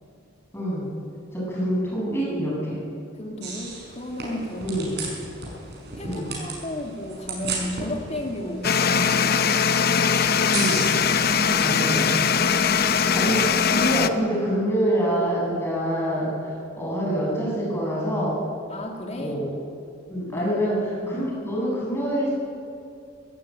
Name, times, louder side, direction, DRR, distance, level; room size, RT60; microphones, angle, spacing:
voice 1, 0.5-0.9 1.3-2.8 4.6-4.9 6.0-6.3 10.5-10.8 11.6-12.2 13.1-18.4 19.2-19.5 20.1-20.8 21.1-22.3, equal, 15° left, -5 dB, 7.8 m, -26 dB
voice 2, 3.1-4.7 5.9-9.6 18.7-19.4 20.3-20.6 21.0-21.2, left 1 dB, 35° left, 2 dB, 2.5 m, -33 dB
sound 1, 3.4-11.5, right 3 dB, 55° right, 6.3 m, -35 dB
sound 2, 8.6-14.1, left 6 dB, 50° left, 0.8 m, -21 dB
23.0 x 14.5 x 8.8 m, 2.5 s
head